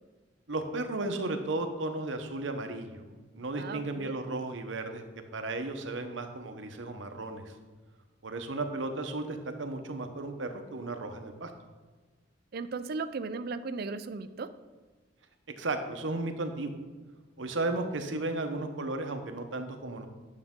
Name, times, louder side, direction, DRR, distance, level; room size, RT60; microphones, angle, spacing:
voice 1, 0.5-3.1 3.3-5.0 5.3-7.5 8.2-11.5 15.6-16.7 17.4-20.1, right 2 dB, 80° right, 6 dB, 0.9 m, -34 dB
voice 2, 3.6-4.1 12.5-14.5, right 4 dB, 55° right, 12 dB, 0.4 m, -36 dB
9.6 x 6.7 x 3.7 m, 1.3 s
head